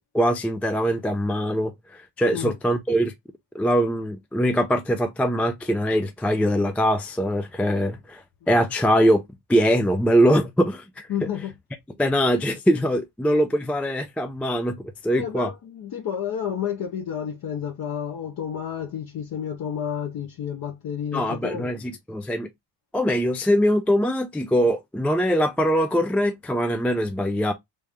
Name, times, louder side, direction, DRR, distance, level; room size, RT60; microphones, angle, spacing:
voice 1, 0.1-3.1 3.5-9.2 9.5-11.1 12.0-15.5 21.1-22.5 22.9-27.5, equal, 5° left, 0.3 m, -22 dB
voice 2, 11.1-11.5 15.1-21.7, left 8 dB, 50° left, 0.9 m, -30 dB
3.4 x 2.7 x 3.3 m
cardioid pair, 95°, 46 cm